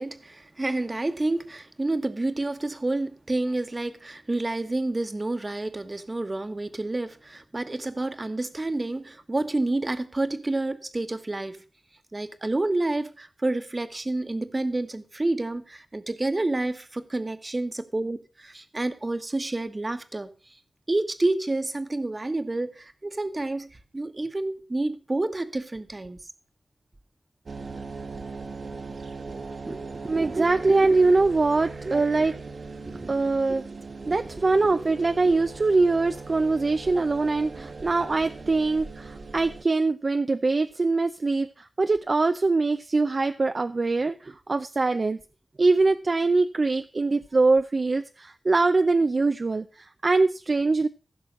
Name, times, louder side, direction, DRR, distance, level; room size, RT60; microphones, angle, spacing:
voice 1, 0.0-11.6 12.1-20.3 20.9-23.7 23.9-26.2 29.7-30.1 32.9-33.1 34.1-34.2, right 2 dB, 30° right, 1.3 m, -29 dB
sound 1, 27.4-39.6, right 4 dB, 65° right, 1.7 m, -39 dB
voice 2, 30.1-32.3 33.0-33.6 34.1-45.2 45.6-50.9, right 3 dB, 45° right, 0.6 m, -23 dB
15.0 x 6.3 x 5.2 m
wide cardioid pair, 100°, 0 cm